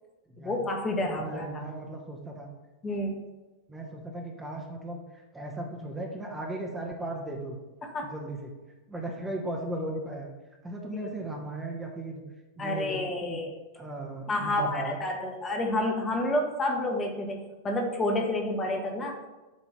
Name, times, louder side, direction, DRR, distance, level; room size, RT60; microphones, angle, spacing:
voice 1, 0.4-1.6 2.8-3.2 7.8-8.1 11.0-11.1 12.6-13.5 14.3-17.4 17.6-19.2, left 1 dB, 20° left, 2 dB, 1.1 m, -29 dB
voice 2, 1.1-2.5 3.7-7.6 8.0-8.5 8.9-10.3 10.6-12.2 12.6-13.4 13.7-15.0, right 1 dB, 10° right, 0 dB, 0.9 m, -36 dB
7.3 x 3.0 x 5.7 m, 1.1 s
figure-of-eight pair, 90°, 0 cm